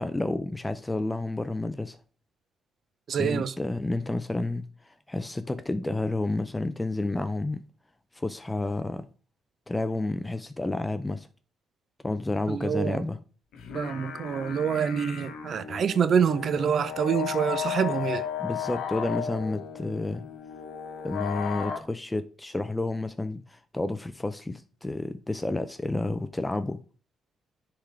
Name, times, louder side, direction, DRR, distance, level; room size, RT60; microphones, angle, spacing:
voice 1, 0.0-2.0 3.2-4.7 5.1-7.6 8.2-9.1 9.7-11.3 12.0-13.2 18.4-20.3 21.0-26.8, left 2 dB, 15° left, 0.5 m, -30 dB
voice 2, 3.1-3.6 12.5-13.0 13.7-18.3, right 7 dB, 55° right, 0.4 m, -26 dB
sound 1, 13.5-21.8, left 9 dB, 80° left, 0.9 m, -35 dB
10.0 x 3.7 x 3.3 m
cardioid pair, 90°, 0 cm